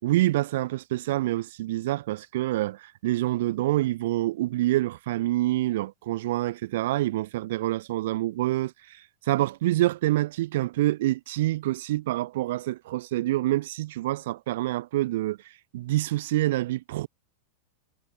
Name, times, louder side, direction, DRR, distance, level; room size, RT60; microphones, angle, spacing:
voice 1, 0.0-8.7 9.3-15.4 15.7-17.1, right 16 dB, 55° right, 7.2 m, -26 dB
figure-of-eight pair, 90°, 0 cm